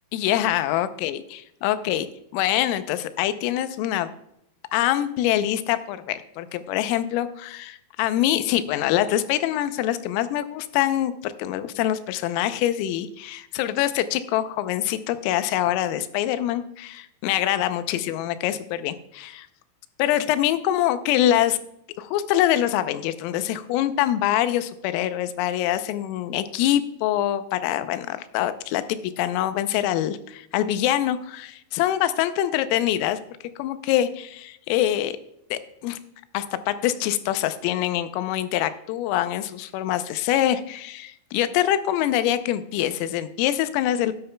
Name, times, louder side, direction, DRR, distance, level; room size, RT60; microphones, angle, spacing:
voice 1, 0.1-2.1 2.3-4.1 4.7-19.5 20.0-21.6 22.0-33.2 33.6-35.2 35.5-36.0 36.3-44.1, left 12 dB, 85° left, 12 dB, 3.3 m, -24 dB
12.0 x 11.0 x 2.2 m, 0.78 s
omnidirectional pair, 5.8 m